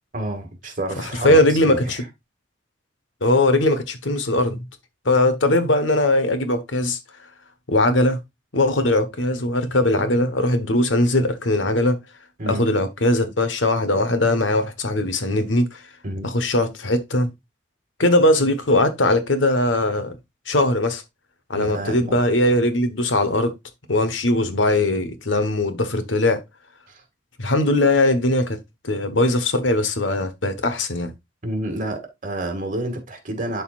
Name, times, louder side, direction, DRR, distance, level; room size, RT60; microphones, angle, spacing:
voice 1, 0.1-2.0 12.4-12.6 16.0-16.3 21.5-22.2 26.9-27.0 31.4-33.6, right 1 dB, 45° right, 2.1 m, -29 dB
voice 2, 1.0-2.0 3.2-4.6 5.0-7.0 7.7-8.2 8.5-12.0 12.5-15.8 16.2-17.3 18.0-20.1 20.5-21.0 21.5-23.5 23.9-26.4 27.4-28.6 28.8-31.1, left 1 dB, 85° left, 1.3 m, -20 dB
11.5 x 4.1 x 2.5 m
head